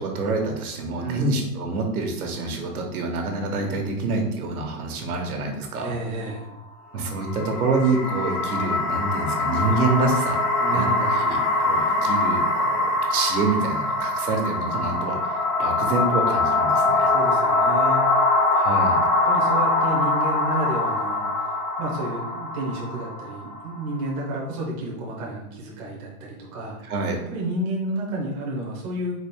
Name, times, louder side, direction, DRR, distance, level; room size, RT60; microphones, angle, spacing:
voice 1, 0.0-5.9 6.9-17.1 18.5-19.0 26.8-27.2, right 3 dB, 75° right, 2 dB, 1.1 m, -27 dB
voice 2, 1.0-1.4 5.8-6.5 10.6-11.3 17.1-18.0 19.2-26.9 27.3-29.2, right 1 dB, 25° right, -3 dB, 0.6 m, -31 dB
sound 1, 7.1-24.2, left 2 dB, 25° left, 0.4 m, -23 dB
4.1 x 2.4 x 3.5 m, 0.89 s
hypercardioid pair, 155°, 44 cm